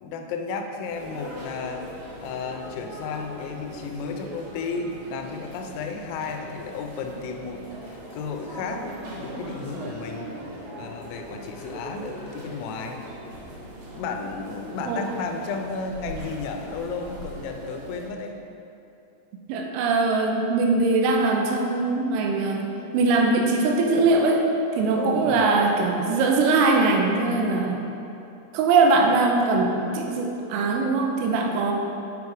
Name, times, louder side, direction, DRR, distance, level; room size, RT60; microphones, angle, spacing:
voice 1, 0.0-1.9 2.2-13.0 13.9-18.4 24.9-25.3, left 4 dB, 85° left, 4 dB, 3.3 m, -33 dB
sound 1, 0.8-18.1, equal, 70° right, 4.0 m, -40 dB
voice 2, 19.5-22.6 22.9-24.5 24.7-27.9 28.5-31.7, right 3 dB, 85° right, 1 dB, 3.5 m, -21 dB
9.7 x 4.8 x 4.8 m, 2.8 s
omnidirectional pair, 5.9 m